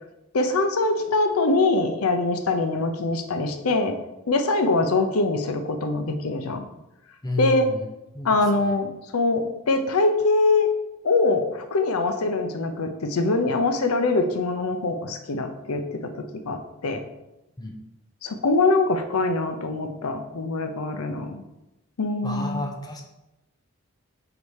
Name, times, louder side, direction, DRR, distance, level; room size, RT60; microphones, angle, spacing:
voice 1, 0.3-4.0 4.3-6.7 7.4-7.7 8.2-10.7 11.0-17.0 18.2-21.4 22.0-22.7, left 3 dB, 85° left, 7 dB, 0.6 m, -23 dB
voice 2, 7.2-7.8 8.1-8.4 17.6-17.7 22.2-23.0, left 2 dB, 20° left, 2 dB, 0.6 m, -30 dB
4.9 x 4.1 x 4.8 m, 0.95 s
head